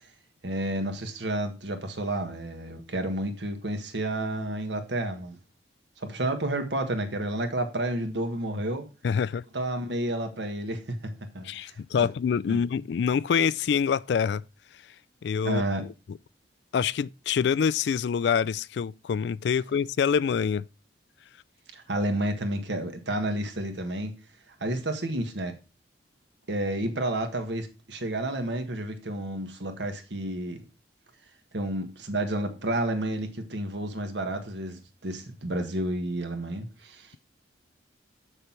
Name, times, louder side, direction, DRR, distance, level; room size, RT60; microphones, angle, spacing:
voice 1, 0.4-5.4 6.0-8.9 9.5-11.8 12.5-12.6 15.4-15.9 21.7-24.1 24.5-25.5 26.5-30.6 31.5-37.1, right 1 dB, 75° right, 1.5 m, -30 dB
voice 2, 9.0-9.4 11.4-14.4 15.2-15.6 16.7-20.6, left 7 dB, 70° left, 0.3 m, -26 dB
7.4 x 6.6 x 4.4 m
head